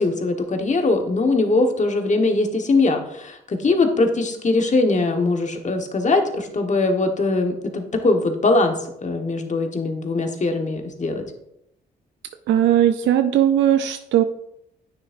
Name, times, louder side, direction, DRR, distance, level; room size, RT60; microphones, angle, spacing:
voice 1, 0.0-11.2, left 3 dB, 40° left, 4 dB, 1.3 m, -21 dB
voice 2, 12.5-14.2, right 11 dB, 80° right, 9 dB, 0.5 m, -18 dB
9.6 x 6.4 x 2.6 m, 0.79 s
supercardioid pair, 65°, 19 cm